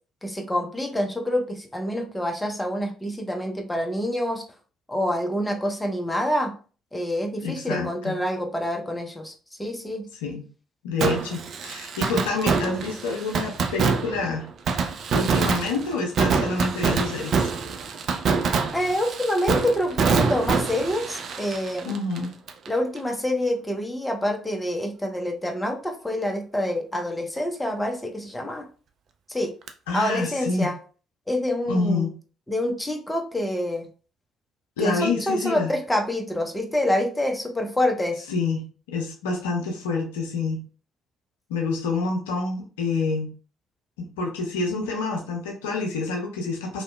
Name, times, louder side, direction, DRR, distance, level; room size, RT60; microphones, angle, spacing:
voice 1, 0.2-4.4 4.9-6.5 6.9-9.3 9.6-10.1 18.7-21.9 22.7-28.7 29.3-29.5 29.9-30.8 31.3-32.0 32.5-33.9 34.8-38.2, left 1 dB, 10° left, 3 dB, 0.6 m, -26 dB
voice 2, 7.4-8.2 10.1-10.4 10.8-14.5 15.1-17.5 21.8-22.3 29.9-30.7 31.7-32.1 34.8-35.7 38.3-40.6 41.5-43.3 44.0-46.8, left 3 dB, 80° left, 0 dB, 0.4 m, -28 dB
Fireworks, 11.0-22.7 23.0-23.1 29.7-29.8, right 5 dB, 55° right, 0.3 m, -25 dB
2.7 x 2.1 x 2.2 m, 0.38 s
figure-of-eight pair, 45°, 0 cm